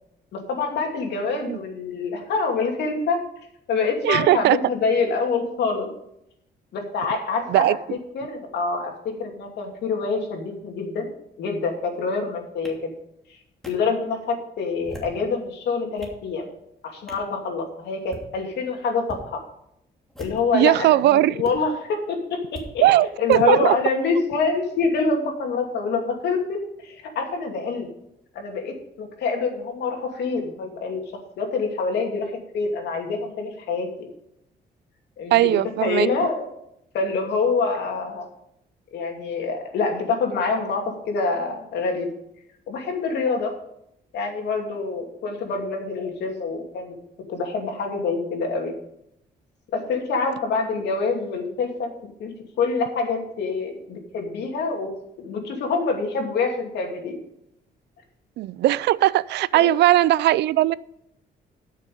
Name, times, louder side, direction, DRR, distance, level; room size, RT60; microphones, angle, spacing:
voice 1, 0.3-3.2 3.7-5.9 6.7-7.8 8.1-8.9 9.2-11.1 11.4-12.9 13.3-13.4 13.6-16.5 16.8-19.4 20.2-22.8 23.2-27.9 28.3-31.0 31.4-34.1 35.2-36.5 36.9-38.3 38.9-42.1 42.7-43.5 44.1-47.0 47.3-48.8 49.7-51.9 52.2-54.9 55.2-57.2 59.5-59.7, left 4 dB, 90° left, 2 dB, 2.6 m, -26 dB
voice 2, 4.0-4.6 7.5-7.8 20.5-21.4 22.8-23.7 35.3-36.1 58.4-60.8, right 14 dB, 85° right, 20 dB, 0.4 m, -18 dB
sound 1, 12.6-12.7 13.6-13.7 14.7-15.2 15.7-16.2 17.1-17.3 17.9-18.3 19.0-19.2 20.1-20.6 21.4-21.5 22.5-22.7 23.3-23.4, equal, ahead, 2.8 m, -40 dB
13.0 x 6.6 x 5.3 m, 0.77 s
cardioid pair, 115°, 17 cm